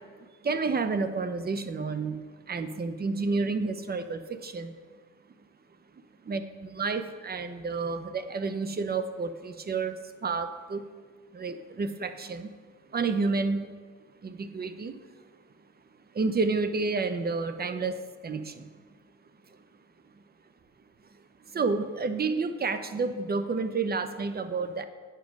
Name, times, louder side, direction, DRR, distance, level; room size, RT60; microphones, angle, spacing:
voice 1, 0.4-4.7 6.2-10.8 11.3-12.5 12.9-13.8 14.2-15.0 16.1-17.9 18.2-18.7 21.5-24.8, right 4 dB, 30° right, 10 dB, 0.7 m, -30 dB
9.2 x 5.3 x 6.3 m, 1.5 s
cardioid pair, 90°, 30 cm